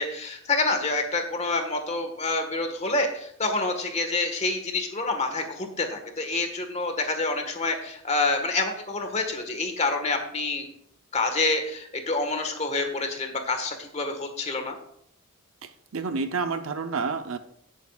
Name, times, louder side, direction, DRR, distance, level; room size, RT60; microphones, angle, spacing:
voice 1, 0.0-10.6 11.1-14.7, left 3 dB, 30° left, 5 dB, 1.5 m, -27 dB
voice 2, 15.6-17.4, right 4 dB, 70° right, 8 dB, 0.7 m, -29 dB
18.0 x 8.4 x 2.4 m, 0.68 s
head